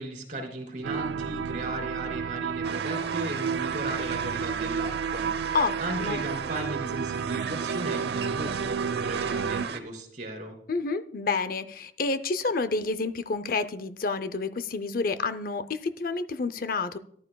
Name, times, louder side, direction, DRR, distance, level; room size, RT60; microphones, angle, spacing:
voice 1, 0.0-10.6, right 1 dB, 45° right, 4 dB, 2.9 m, -36 dB
sound 1, 0.8-9.7, right 6 dB, 90° right, 0.3 m, -31 dB
sound 2, 2.6-9.8, right 5 dB, 65° right, 0.9 m, -37 dB
voice 2, 5.5-6.2 10.7-17.0, left 4 dB, 55° left, 13 dB, 0.6 m, -29 dB
14.5 x 11.5 x 2.3 m, 0.66 s
head